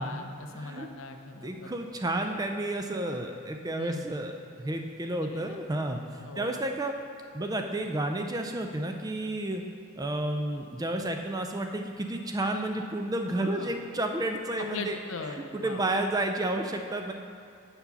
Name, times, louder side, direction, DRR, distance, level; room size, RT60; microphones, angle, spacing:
voice 1, 0.0-1.8 3.8-4.2 5.2-5.6 6.2-6.6 13.3-13.8 14.6-15.9, left 3 dB, 60° left, 5 dB, 0.6 m, -40 dB
voice 2, 0.5-0.9 1.4-7.0 7.3-9.6 10.0-15.0 15.6-17.1, right 1 dB, 15° right, 4 dB, 0.3 m, -31 dB
7.2 x 5.1 x 6.9 m, 2.4 s
head